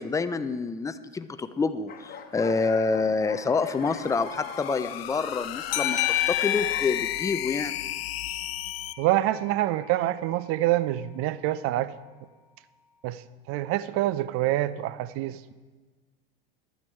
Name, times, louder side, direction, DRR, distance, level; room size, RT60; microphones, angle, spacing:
voice 1, 0.0-6.0 6.3-7.8, left 4 dB, 10° left, 12 dB, 0.4 m, -27 dB
sound 1, 1.9-6.9, left 7 dB, 30° left, 1.2 m, -40 dB
sound 2, 3.5-8.9, left 13 dB, 90° left, 0.5 m, -36 dB
sound 3, 5.7-9.0, left 15 dB, 75° left, 1.4 m, -29 dB
voice 2, 9.0-11.9 13.0-13.2 13.5-15.5, right 14 dB, 50° right, 16 dB, 0.5 m, -26 dB
11.5 x 9.1 x 4.6 m, 1.4 s
hypercardioid pair, 100°, 30 cm